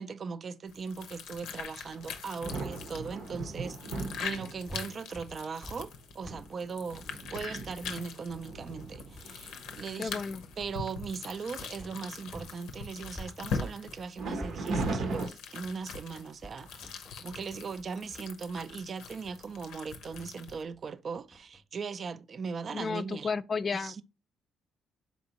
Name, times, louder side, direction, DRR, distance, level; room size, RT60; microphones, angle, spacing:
voice 1, 0.0-7.0 7.3-10.2 10.6-23.3 23.8-23.9, right 5 dB, 45° right, 0.3 m, -39 dB
sound 1, 0.7-20.6, left 5 dB, 90° left, 0.6 m, -43 dB
sound 2, 2.0-4.9 5.6-5.7 6.2-9.8 10.3-10.5 10.8-11.2 11.6-12.4 14.2-15.3, right 3 dB, 75° right, 0.8 m, -38 dB
sound 3, 4.3-12.6 12.8-21.6, equal, ahead, 0.6 m, -49 dB
voice 2, 10.0-10.4 22.7-24.0, left 5 dB, 40° left, 0.3 m, -33 dB
4.1 x 3.5 x 2.8 m
cardioid pair, 90°, 0 cm